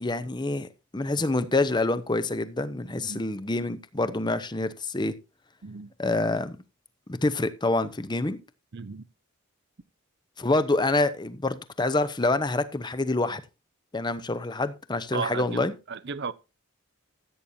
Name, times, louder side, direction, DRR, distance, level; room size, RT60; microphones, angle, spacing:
voice 1, 0.0-5.1 6.0-6.6 7.1-8.4 10.4-13.4 13.9-15.7, left 2 dB, 20° left, 0.7 m, -27 dB
voice 2, 8.7-9.0 15.1-16.3, right 5 dB, 50° right, 0.6 m, -35 dB
15.5 x 8.6 x 2.7 m
head